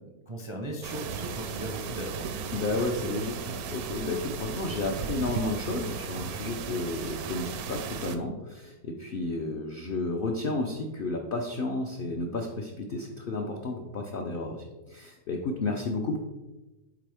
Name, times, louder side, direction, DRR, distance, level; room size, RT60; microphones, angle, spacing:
voice 1, 0.3-2.4, right 1 dB, 35° right, 0 dB, 0.5 m, -37 dB
sound 1, 0.8-8.2, right 6 dB, 75° right, 1.0 m, -36 dB
voice 2, 2.5-16.2, left 2 dB, 70° left, 2 dB, 0.5 m, -32 dB
8.6 x 3.3 x 3.4 m, 1.1 s
omnidirectional pair, 1.6 m